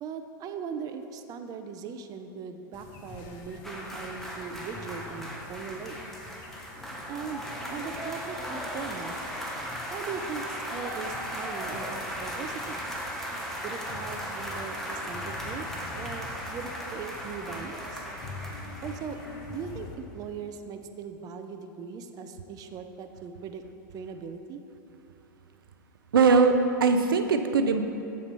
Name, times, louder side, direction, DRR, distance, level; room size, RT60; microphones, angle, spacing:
voice 1, 0.0-6.0 7.1-9.3 9.9-12.8 13.6-18.1 18.8-19.2 19.5-23.6 23.9-24.6, right 6 dB, 35° right, 7 dB, 0.5 m, -39 dB
sound 1, 2.7-19.9, left 2 dB, 45° left, 0.9 m, -46 dB
sound 2, 3.6-19.9 20.2-20.4, equal, 5° left, 1.1 m, -37 dB
voice 2, 26.1-27.8, right 4 dB, 85° right, 7 dB, 0.4 m, -21 dB
7.6 x 4.2 x 5.4 m, 2.8 s
hypercardioid pair, 105°, 11 cm